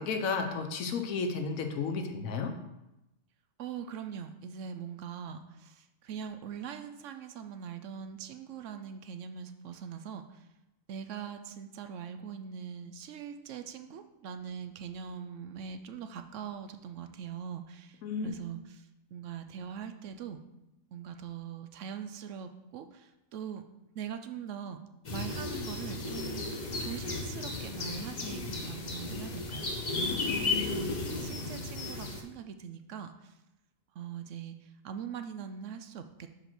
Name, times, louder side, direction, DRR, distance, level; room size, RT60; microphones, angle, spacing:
voice 1, 0.0-2.5 18.0-18.4 30.2-30.9, left 5 dB, 80° left, 5 dB, 1.2 m, -33 dB
voice 2, 3.6-10.5 10.9-20.4 20.9-23.7 23.9-24.8 25.1-29.7 30.5-33.4 33.9-36.4, right 8 dB, 70° right, 8 dB, 0.9 m, -42 dB
sound 1, 25.0-32.2, left 3 dB, 35° left, 0.9 m, -34 dB
5.0 x 4.8 x 6.0 m, 0.92 s
omnidirectional pair, 1.4 m